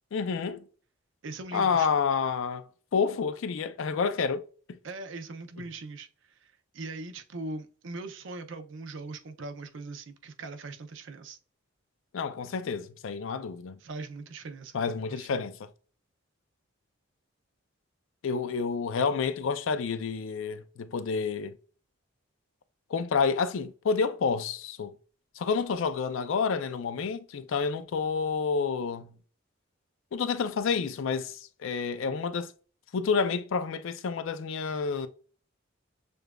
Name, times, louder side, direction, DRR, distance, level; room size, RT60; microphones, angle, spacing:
voice 1, 0.1-0.6 1.5-2.6 2.9-4.8 12.1-13.8 14.7-15.7 18.2-21.6 22.9-24.9 25.4-29.1 30.1-32.5 32.9-35.1, left 5 dB, 70° left, 0.4 m, -29 dB
voice 2, 1.2-1.9 4.8-11.4 13.8-15.4, right 3 dB, 65° right, 0.5 m, -41 dB
6.6 x 2.4 x 2.2 m
head